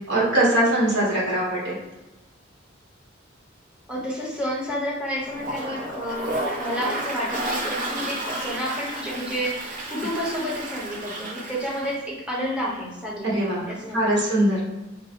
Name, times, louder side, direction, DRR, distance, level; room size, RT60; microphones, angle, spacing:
voice 1, 0.1-1.8 13.2-14.6, right 1 dB, 60° right, -6 dB, 1.2 m, -22 dB
voice 2, 3.9-6.3 6.6-14.1, equal, 5° right, -6 dB, 1.0 m, -30 dB
Toilet flush, 5.2-12.0, right 1 dB, 40° right, 0.5 m, -32 dB
3.8 x 2.1 x 2.9 m, 1.1 s
head